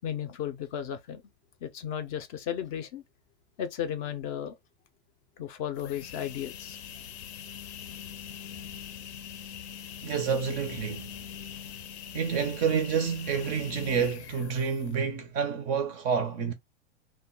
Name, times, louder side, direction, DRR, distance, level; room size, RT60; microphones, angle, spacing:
voice 1, 0.0-1.2 1.6-3.0 3.6-4.5 5.4-6.8, left 9 dB, 35° left, 0.4 m, -34 dB
sound 1, 5.8-15.1, left 8 dB, 75° left, 0.6 m, -43 dB
voice 2, 10.0-11.1 12.1-16.5, right 6 dB, 25° right, 0.4 m, -28 dB
2.2 x 2.2 x 3.6 m
supercardioid pair, 145°, 33 cm